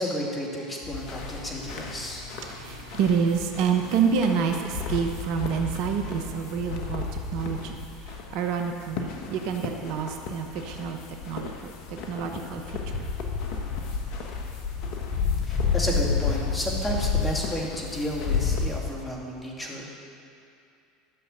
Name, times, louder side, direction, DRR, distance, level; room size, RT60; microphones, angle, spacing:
voice 1, 0.0-2.2 15.5-19.9, equal, 15° left, -3 dB, 2.7 m, -32 dB
sound 1, 0.8-18.9, left 5 dB, 60° left, 1.3 m, -31 dB
voice 2, 2.0-7.8 8.1-11.0 11.3-12.6 12.9-13.1, right 6 dB, 60° right, 4 dB, 0.9 m, -28 dB
11.5 x 6.4 x 7.7 m, 2.6 s
hypercardioid pair, 80°, 0 cm